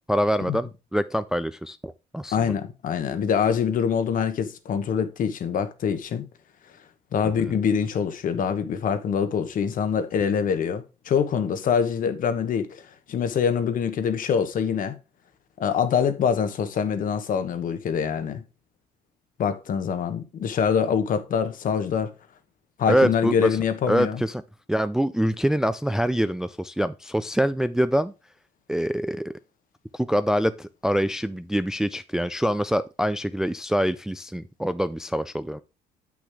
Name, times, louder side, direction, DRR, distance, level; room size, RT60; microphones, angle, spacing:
voice 1, 0.1-2.5 7.4-7.5 22.9-23.6 23.9-24.4 24.7-28.1 28.7-29.3 29.9-35.6, equal, 5° right, 0.4 m, -25 dB
voice 2, 2.3-6.3 7.1-15.0 15.6-18.4 19.4-22.1 22.8-24.2, left 7 dB, 55° left, 1.2 m, -25 dB
8.0 x 6.1 x 3.5 m
cardioid pair, 110°, 17 cm